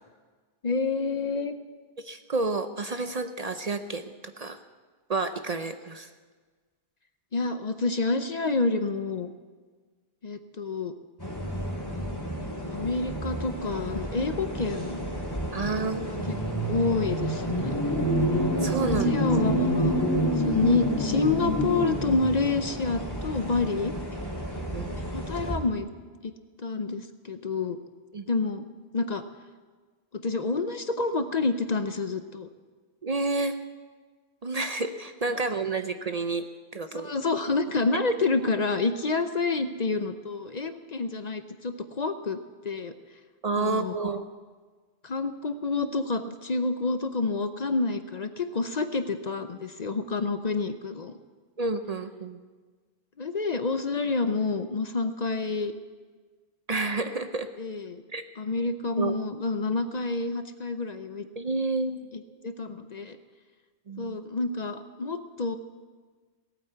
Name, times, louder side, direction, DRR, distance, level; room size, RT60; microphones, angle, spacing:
voice 1, 0.6-1.5 7.3-9.3 10.2-10.9 12.7-15.0 16.1-17.8 18.8-20.0 20.4-23.9 25.1-25.9 26.2-26.3 26.6-27.8 28.3-28.6 28.9-29.2 30.1-32.5 36.9-42.9 43.6-44.0 45.0-51.2 53.2-55.7 57.6-58.0 58.4-61.3 62.1-63.2 64.0-65.6, left 3 dB, 45° left, 9 dB, 0.7 m, -28 dB
voice 2, 2.0-4.6 5.1-6.1 15.5-16.3 18.6-19.2 24.7-24.9 28.1-28.3 33.0-33.6 34.4-36.5 36.7-37.1 43.4-44.2 51.6-52.4 56.7-57.5 58.1-58.2 59.0-59.2 61.4-62.1 63.9-64.2, right 3 dB, 45° right, 9 dB, 0.6 m, -30 dB
sound 1, 11.2-25.6, equal, 20° left, 2.7 m, -29 dB
18.0 x 9.0 x 7.9 m, 1.4 s
omnidirectional pair, 1.1 m